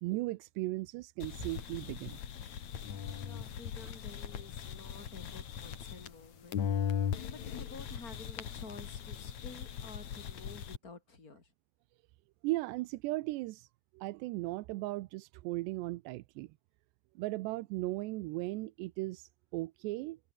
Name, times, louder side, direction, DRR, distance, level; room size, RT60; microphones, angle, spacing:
voice 1, 0.0-2.2 12.4-13.7 13.9-16.5 17.2-20.2, right 20 dB, 80° right, 2.7 m, -37 dB
sound 1, 1.2-6.2 6.5-10.8, left 8 dB, 50° left, 2.6 m, -39 dB
voice 2, 3.2-11.5, left 4 dB, 20° left, 3.4 m, -51 dB
omnidirectional pair, 5.3 m